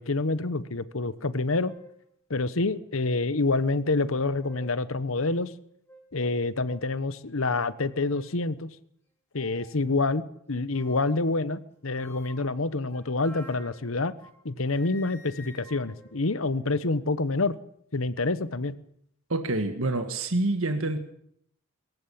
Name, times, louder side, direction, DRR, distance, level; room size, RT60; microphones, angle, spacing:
voice 1, 0.0-1.7 2.3-5.5 6.1-8.7 9.3-10.2 10.5-14.1 14.4-17.5 17.9-18.8, left 3 dB, 70° left, 15 dB, 1.1 m, -27 dB
sound 1, 1.2-1.3 1.6-2.0 2.7-2.8 4.1-4.8 5.3-5.4 5.9-6.1 6.6-6.9 7.6-8.3 9.3-9.8 10.7-11.3 11.9-14.4 14.7-17.0, left 1 dB, 10° left, 5.3 m, -52 dB
voice 2, 19.3-21.0, right 2 dB, 70° right, 6 dB, 1.8 m, -27 dB
23.5 x 15.0 x 8.6 m, 0.70 s
head